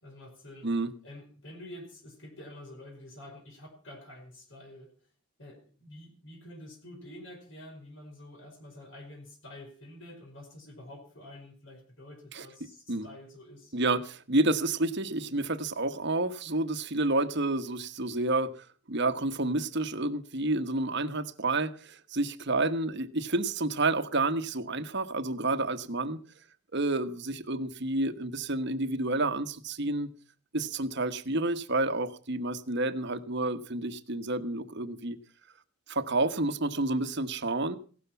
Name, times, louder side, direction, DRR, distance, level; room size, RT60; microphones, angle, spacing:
voice 1, 0.0-0.7 1.0-4.9 5.4-13.8, left 1 dB, 60° left, 2 dB, 4.9 m, -48 dB
voice 2, 13.7-18.5 18.9-26.2 26.7-30.1 30.5-35.2 35.9-37.8, right 2 dB, 55° right, 11 dB, 1.3 m, -29 dB
16.5 x 12.5 x 5.9 m, 0.41 s
head